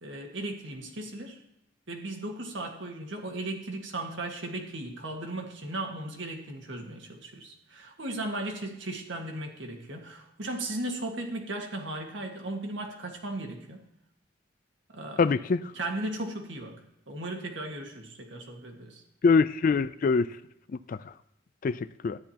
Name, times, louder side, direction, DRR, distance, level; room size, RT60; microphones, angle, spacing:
voice 1, 0.0-1.4 1.9-13.8 14.9-15.3 15.7-19.0, right 2 dB, 70° right, 1.6 m, -36 dB
voice 2, 15.2-15.6 19.2-20.3 20.9-21.0 21.6-22.2, left 4 dB, 45° left, 0.3 m, -24 dB
13.0 x 10.5 x 2.9 m
head